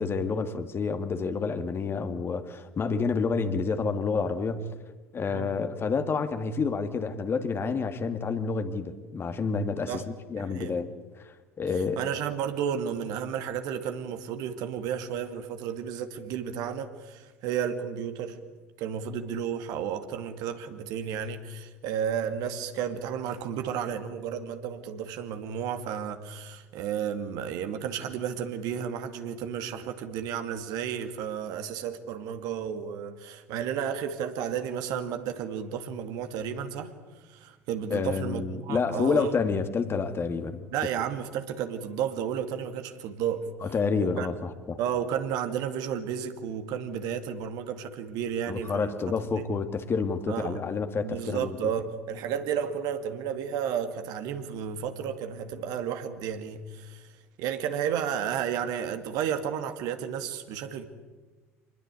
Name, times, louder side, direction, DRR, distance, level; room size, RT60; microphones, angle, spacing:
voice 1, 0.0-4.7 5.1-10.9 11.2-12.0 37.9-40.7 43.6-44.8 48.5-51.6, left 5 dB, 30° left, 9 dB, 2.1 m, -29 dB
voice 2, 10.3-10.8 12.0-18.4 18.8-36.9 37.3-39.4 40.7-43.5 43.9-44.3 44.8-49.0 49.3-49.4 50.3-50.6 51.0-57.1 57.4-60.8, right 8 dB, 55° right, 8 dB, 2.2 m, -32 dB
26.5 x 20.5 x 8.4 m, 1.3 s
figure-of-eight pair, 65°, 8 cm